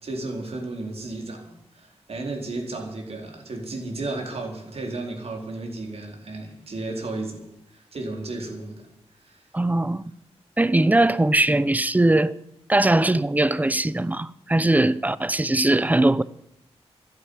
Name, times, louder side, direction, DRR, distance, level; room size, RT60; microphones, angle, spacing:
voice 1, 0.0-8.8 9.2-9.4, right 2 dB, 65° right, 4.2 m, -33 dB
voice 2, 9.5-10.0 10.6-12.4 12.7-16.2, right 2 dB, 15° right, 0.7 m, -20 dB
13.0 x 10.5 x 9.8 m
cardioid pair, 65°, 11 cm